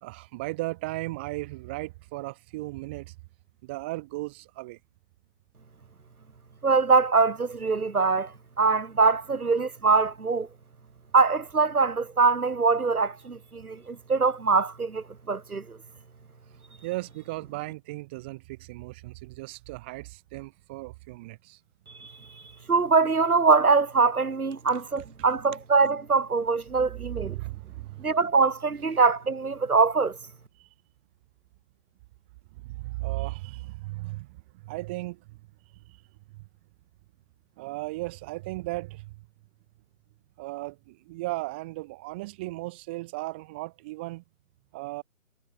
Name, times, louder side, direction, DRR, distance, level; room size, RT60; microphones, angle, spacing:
voice 1, 0.0-3.1 3.6-4.8 16.8-21.6 25.0-25.1 27.2-28.1 30.6-30.7 32.6-34.3 34.5-35.2 35.9-36.0 36.3-36.4 37.6-39.1 40.4-44.2 44.7-45.0, right 21 dB, 10° right, 2.1 m, -36 dB
voice 2, 6.6-8.3 8.6-10.5 11.1-15.8 22.0-22.1 22.7-27.4 28.0-30.2, right 4 dB, 80° right, 3.2 m, -23 dB
hypercardioid pair, 175°, 43 cm